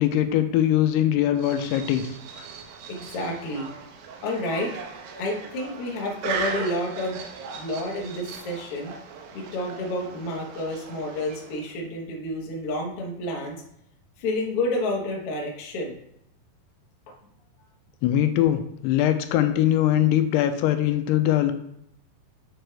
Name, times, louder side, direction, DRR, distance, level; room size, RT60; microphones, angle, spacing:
voice 1, 0.0-2.1 2.4-2.5 18.0-21.5, left 12 dB, 85° left, 8 dB, 2.5 m, -22 dB
sound 1, 1.4-11.8, right 5 dB, 75° right, 2.4 m, -38 dB
voice 2, 2.9-3.7 4.2-4.7 5.2-7.2 7.5-8.9 9.3-13.6 14.2-16.0 17.1-17.2, left 1 dB, 60° left, -2 dB, 1.5 m, -30 dB
8.7 x 6.1 x 3.3 m, 0.76 s
omnidirectional pair, 4.7 m